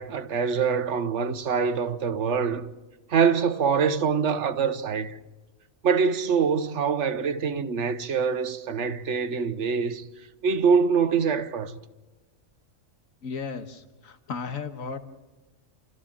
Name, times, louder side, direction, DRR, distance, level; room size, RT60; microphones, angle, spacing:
voice 1, 0.0-2.7 3.1-5.2 5.8-10.1 10.4-11.8, right 6 dB, 60° right, 1.3 m, -24 dB
voice 2, 13.2-15.0, left 5 dB, 75° left, 1.8 m, -35 dB
29.5 x 14.0 x 7.5 m
omnidirectional pair, 1.4 m